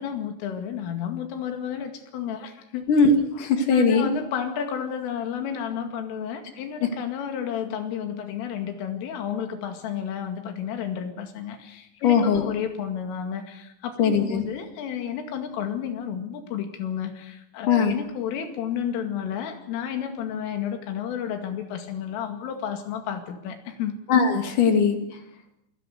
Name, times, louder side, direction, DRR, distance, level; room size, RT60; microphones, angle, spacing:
voice 1, 0.0-2.9 3.7-23.9, left 8 dB, 90° left, 6 dB, 4.8 m, -31 dB
voice 2, 2.9-4.1 12.0-12.4 14.0-14.4 17.7-17.9 24.1-25.0, left 5 dB, 50° left, 5 dB, 3.3 m, -20 dB
27.5 x 17.5 x 6.7 m, 0.79 s
omnidirectional pair, 5.6 m